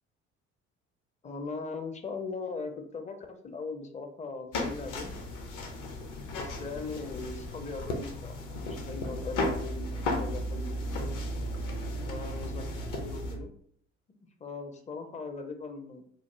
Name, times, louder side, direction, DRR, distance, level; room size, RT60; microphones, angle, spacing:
voice 1, 1.2-5.1 6.3-8.4 8.7-11.1 11.9-13.5 14.4-16.0, left 4 dB, 20° left, 6 dB, 0.5 m, -39 dB
sound 1, 4.5-13.3, left 1 dB, 55° left, 0.7 m, -35 dB
3.1 x 2.0 x 2.9 m, 0.63 s
figure-of-eight pair, 50°, 38 cm